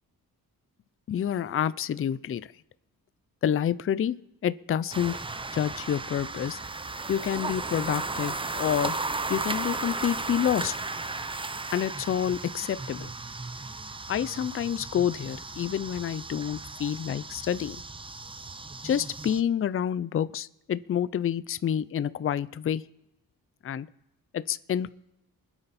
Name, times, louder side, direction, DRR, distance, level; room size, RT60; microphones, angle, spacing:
voice 1, 1.1-2.4 3.4-4.2 4.4-5.2 5.5-6.6 7.1-9.0 9.3-10.7 11.7-13.1 14.1-17.8 18.8-22.8 23.6-23.9 24.3-24.9, left 9 dB, 40° left, 16 dB, 0.5 m, -28 dB
passby w grunt and cicadas, 4.9-19.4, right 3 dB, 15° right, 0.5 m, -35 dB
25.0 x 8.8 x 4.2 m, 0.95 s
cardioid pair, 105°, 36 cm